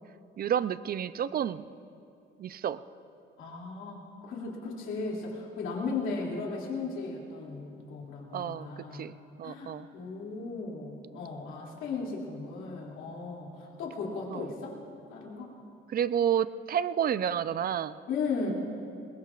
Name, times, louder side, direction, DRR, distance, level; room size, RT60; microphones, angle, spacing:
voice 1, 0.4-1.6 2.4-2.8 8.3-9.9 14.3-14.5 15.9-18.0, right 9 dB, 50° right, 15 dB, 0.5 m, -30 dB
voice 2, 3.4-9.0 9.4-14.8 15.1-15.5 18.1-18.5, left 4 dB, 85° left, -3 dB, 2.6 m, -36 dB
21.0 x 20.5 x 2.5 m, 2.5 s
cardioid pair, 90°, 20 cm